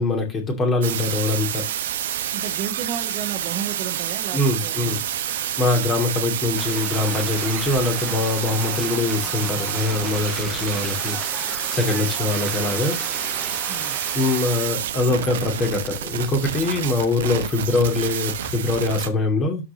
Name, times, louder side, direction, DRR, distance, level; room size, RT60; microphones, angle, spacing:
voice 1, 0.0-1.7 4.3-5.0 5.2-13.0 14.1-19.7, left 3 dB, 25° left, 2.7 m, -23 dB
sound 1, 0.8-19.1, right 10 dB, 60° right, 1.0 m, -28 dB
voice 2, 2.3-5.1 13.7-14.0, right 9 dB, 40° right, 2.0 m, -33 dB
sound 2, 6.6-14.7, left 1 dB, 5° left, 0.8 m, -36 dB
12.5 x 5.0 x 3.0 m
figure-of-eight pair, 90°, 0 cm